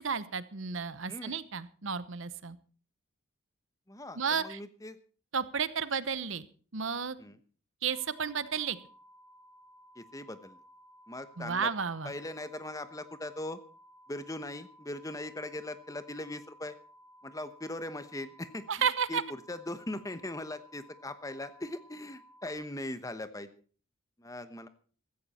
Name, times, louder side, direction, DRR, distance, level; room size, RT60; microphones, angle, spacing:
voice 1, 0.0-2.6 4.1-4.6 5.3-6.5 6.7-7.2 7.8-8.8 11.4-12.1 18.7-19.2, right 6 dB, 65° right, 15 dB, 0.9 m, -32 dB
voice 2, 1.1-1.4 3.9-5.0 7.2-7.4 10.0-10.6 11.1-11.7 12.0-13.6 14.1-16.8 17.2-18.7 19.1-19.2 19.5-23.5 24.2-24.7, left 1 dB, 15° left, 12 dB, 0.9 m, -40 dB
sound 1, 7.9-22.5, equal, 55° left, 7.5 m, -58 dB
16.0 x 14.0 x 4.2 m, 0.41 s
head